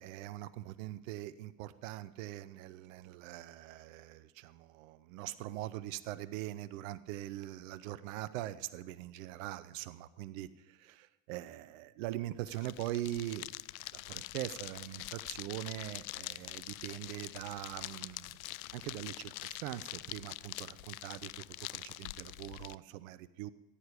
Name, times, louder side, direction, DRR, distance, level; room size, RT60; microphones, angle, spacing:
voice 1, 0.0-13.5 14.1-18.4 18.7-21.5 21.7-23.5, right 14 dB, 70° right, 15 dB, 0.8 m, -42 dB
sound 1, 12.4-22.7, left 19 dB, 75° left, 0.5 m, -45 dB
14.5 x 10.0 x 5.1 m, 1.1 s
hypercardioid pair, 70°, 42 cm